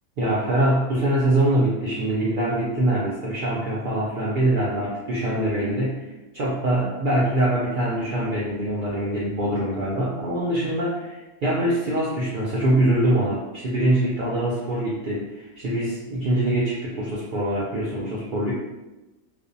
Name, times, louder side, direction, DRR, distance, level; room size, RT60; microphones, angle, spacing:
voice 1, 0.2-6.1 6.3-18.5, right 1 dB, 85° right, -7 dB, 0.4 m, -23 dB
2.5 x 2.1 x 2.5 m, 1.0 s
omnidirectional pair, 1.4 m